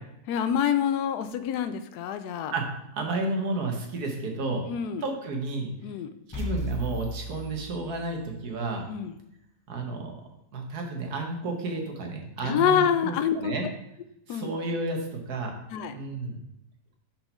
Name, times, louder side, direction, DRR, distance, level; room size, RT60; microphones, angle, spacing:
voice 1, 0.3-2.5 4.7-5.0 5.8-6.1 8.9-9.1 12.4-13.5 14.3-14.5 15.7-16.0, left 8 dB, 85° left, 10 dB, 1.2 m, -26 dB
voice 2, 2.9-4.6 5.0-5.7 6.3-8.8 9.7-10.1 10.5-13.6 14.3-15.5 15.9-16.4, right 2 dB, 75° right, 2 dB, 1.6 m, -31 dB
sound 1, 6.3-8.4, equal, 20° left, 0.6 m, -35 dB
5.5 x 4.4 x 5.5 m, 0.80 s
omnidirectional pair, 1.7 m